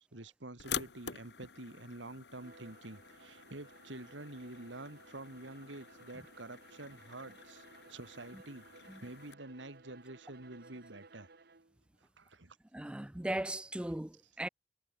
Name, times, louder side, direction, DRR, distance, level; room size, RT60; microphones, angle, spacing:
voice 1, 0.0-8.7 9.0-11.3 12.2-12.6, right 2 dB, 85° right, 2.7 m, -48 dB
sound 1, 0.6-9.3, left 8 dB, 65° left, 1.5 m, -47 dB
Bowed string instrument, 2.3-11.8, right 3 dB, 55° right, 1.5 m, -59 dB
voice 2, 12.7-14.5, right 1 dB, 5° right, 0.3 m, -38 dB
head